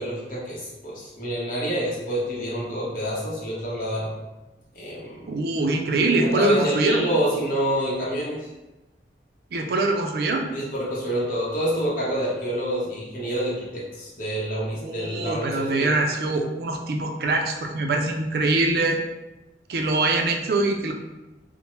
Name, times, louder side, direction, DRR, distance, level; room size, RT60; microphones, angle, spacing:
voice 1, 0.0-4.1 4.7-5.4 6.2-8.5 10.5-15.9, equal, 50° left, -6 dB, 0.9 m, -27 dB
voice 2, 5.3-7.0 9.5-10.5 14.8-19.0 19.7-20.9, right 2 dB, 60° right, 3 dB, 0.4 m, -23 dB
2.9 x 2.1 x 3.0 m, 1.0 s
head